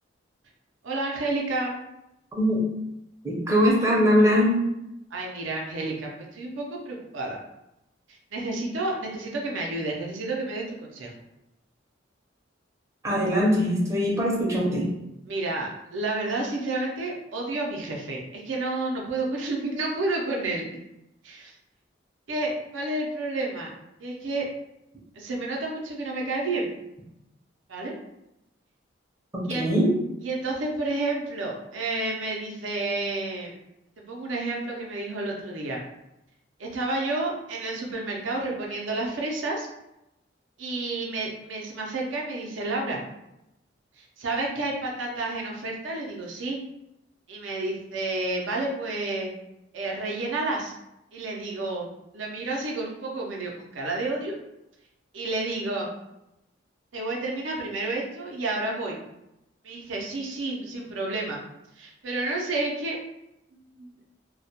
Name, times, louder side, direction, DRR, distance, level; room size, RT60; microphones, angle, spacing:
voice 1, 0.8-1.8 5.1-7.4 8.3-11.1 15.3-20.7 21.2-21.5 22.3-23.7 24.0-24.5 25.2-26.7 27.7-27.9 29.5-29.7 30.2-33.5 34.0-35.8 36.6-39.7 40.6-43.0 44.0-46.6 47.3-49.3 49.7-50.7 51.1-51.9 52.1-54.4 55.1-55.9 56.9-59.0 59.6-61.4 61.8-63.0 63.8-63.9, right 2 dB, 80° right, -1 dB, 0.5 m, -30 dB
voice 2, 3.2-4.6 13.0-14.9 29.5-29.9, equal, 15° right, -5 dB, 0.5 m, -21 dB
2.2 x 2.1 x 2.7 m, 0.88 s
head